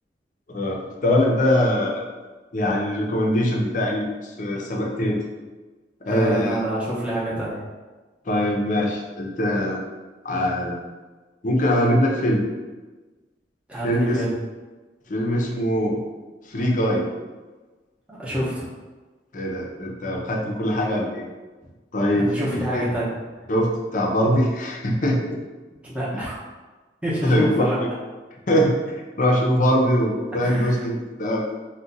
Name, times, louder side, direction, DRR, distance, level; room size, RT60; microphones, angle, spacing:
voice 1, 0.5-2.0 2.5-5.2 6.0-6.6 8.3-9.8 10.2-10.8 11.4-12.4 13.8-14.2 15.1-16.0 16.5-17.1 19.3-21.3 21.9-22.9 23.5-25.4 26.1-26.2 27.2-27.7 28.5-31.5, equal, 45° left, -1 dB, 0.5 m, -22 dB
voice 2, 6.1-7.6 13.7-14.4 18.1-18.7 22.1-23.2 25.8-26.3 27.0-27.8 30.3-30.8, equal, 5° right, -8 dB, 0.7 m, -27 dB
2.5 x 2.2 x 3.8 m, 1.3 s
head